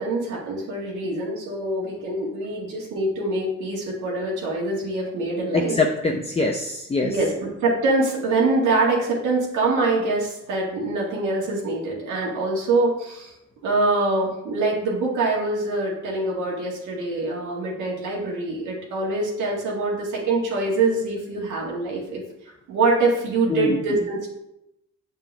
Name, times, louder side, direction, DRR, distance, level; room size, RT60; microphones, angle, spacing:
voice 1, 0.0-5.7 7.0-13.3 13.6-22.2 22.7-24.3, right 2 dB, 90° right, -3 dB, 2.0 m, -24 dB
voice 2, 5.5-7.1 23.5-24.1, left 2 dB, 20° left, 1 dB, 0.6 m, -23 dB
6.9 x 5.4 x 3.4 m, 0.84 s
cardioid pair, 90°, 30 cm